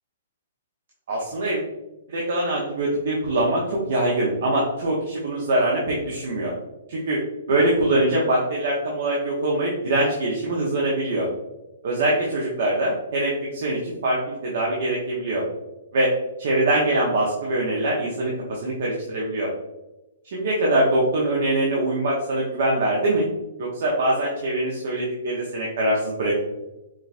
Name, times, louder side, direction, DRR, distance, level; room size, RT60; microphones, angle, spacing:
voice 1, 1.1-1.6 2.1-6.5 6.9-7.2 7.5-11.3 11.8-15.4 15.9-16.1 16.4-19.5 20.3-23.3 23.6-26.3, right 1 dB, 65° right, -3 dB, 0.8 m, -23 dB
5.1 x 2.7 x 2.5 m, 1.0 s
hypercardioid pair, 140°, 0 cm